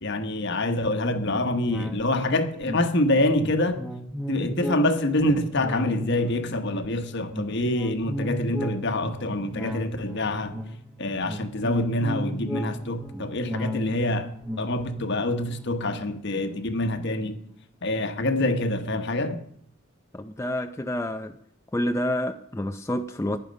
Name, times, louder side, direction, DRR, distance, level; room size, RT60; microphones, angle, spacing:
voice 1, 0.0-3.8 4.3-10.5 11.0-14.3 14.6-17.4 17.8-19.4, left 1 dB, 55° left, 1.3 m, -26 dB
sound 1, 1.3-17.0 17.4-17.5, equal, 5° right, 1.0 m, -36 dB
voice 2, 20.1-21.3 21.7-23.4, left 1 dB, 15° left, 0.5 m, -28 dB
15.0 x 11.0 x 5.3 m
head